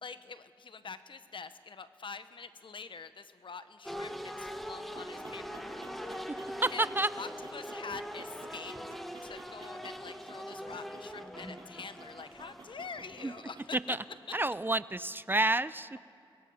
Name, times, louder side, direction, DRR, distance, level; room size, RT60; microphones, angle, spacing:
voice 1, 0.0-6.3 6.7-6.9 7.2-8.8 9.2-14.0, left 5 dB, 60° left, 11 dB, 1.0 m, -45 dB
sound 1, 3.8-12.0, left 2 dB, 35° left, 2.3 m, -53 dB
sound 2, 3.9-13.4, equal, ahead, 1.5 m, -43 dB
sound 3, 4.9-14.3, right 3 dB, 60° right, 2.8 m, -53 dB
voice 2, 6.6-7.1 13.2-13.3 13.9-14.0 14.3-15.9, right 2 dB, 20° right, 16 dB, 0.5 m, -29 dB
26.5 x 22.5 x 5.7 m, 2.7 s
cardioid pair, 65°, 10 cm